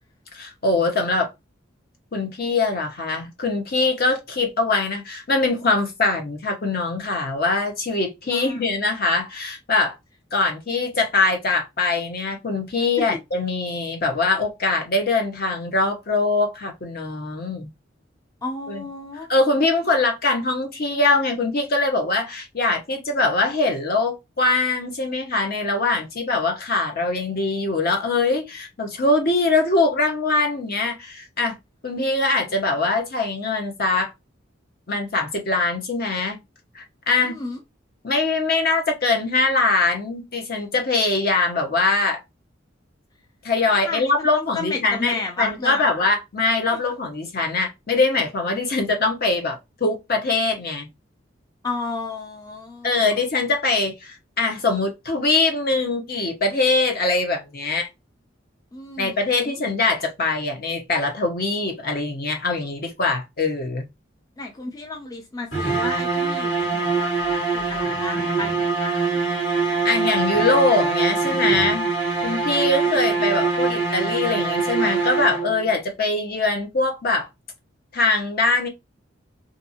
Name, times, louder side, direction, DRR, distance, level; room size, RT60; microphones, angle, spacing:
voice 1, 0.3-1.3 2.1-10.0 10.3-17.7 18.7-18.8 19.3-31.6 31.8-34.1 34.9-36.4 36.7-37.4 38.0-42.2 43.4-50.9 52.8-57.9 59.0-63.9 69.5-71.9 72.2-77.3 77.9-78.7, left 3 dB, 50° left, 0.8 m, -22 dB
voice 2, 8.3-8.6 13.0-13.1 18.4-19.3 32.5-32.7 37.2-37.6 43.6-45.9 46.7-46.8 51.6-53.2 58.7-59.6 64.4-69.2, left 3 dB, 20° left, 0.4 m, -32 dB
sound 1, 65.5-75.7, right 4 dB, 85° left, 1.8 m, -23 dB
2.6 x 2.5 x 2.7 m
head